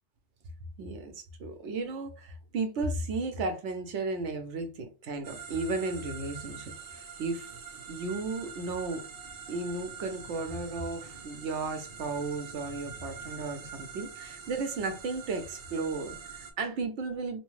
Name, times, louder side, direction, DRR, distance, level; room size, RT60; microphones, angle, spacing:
voice 1, 0.8-9.1 9.5-17.4, right 3 dB, 80° right, 1.0 m, -34 dB
sound 1, 5.2-16.5, right 6 dB, 55° right, 0.6 m, -45 dB
3.0 x 2.1 x 3.0 m
omnidirectional pair, 1.2 m